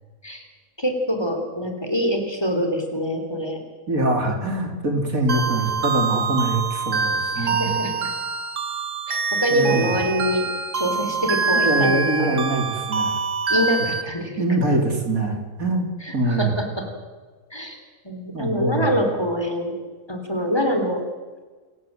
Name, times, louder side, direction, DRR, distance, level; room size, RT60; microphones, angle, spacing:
voice 1, 0.8-3.6 7.4-8.1 9.1-10.4 10.7-12.4 13.5-14.4 16.0-16.9 17.5-19.7 20.1-21.0, equal, 15° left, 5 dB, 3.6 m, -25 dB
voice 2, 3.9-7.7 9.5-10.0 11.6-13.2 14.4-15.9 16.1-16.5 18.3-18.9, right 2 dB, 80° right, 3 dB, 4.1 m, -23 dB
sound 1, 5.3-14.0, right 4 dB, 65° right, 1.7 m, -25 dB
28.0 x 17.0 x 7.7 m, 1.4 s
omnidirectional pair, 1.4 m